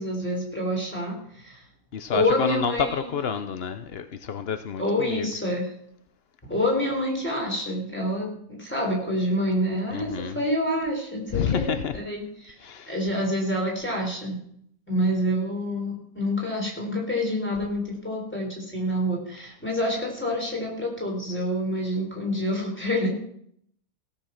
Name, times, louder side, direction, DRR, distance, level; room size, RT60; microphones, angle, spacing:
voice 1, 0.0-1.6 2.1-3.1 4.8-5.7 6.5-12.5 12.9-14.4 14.9-23.1, left 1 dB, 5° left, -1 dB, 3.9 m, -27 dB
voice 2, 1.9-5.3 9.9-10.4 11.3-11.9 12.6-12.9, left 7 dB, 85° left, 10 dB, 0.5 m, -29 dB
17.0 x 7.1 x 5.8 m, 0.68 s
omnidirectional pair, 2.1 m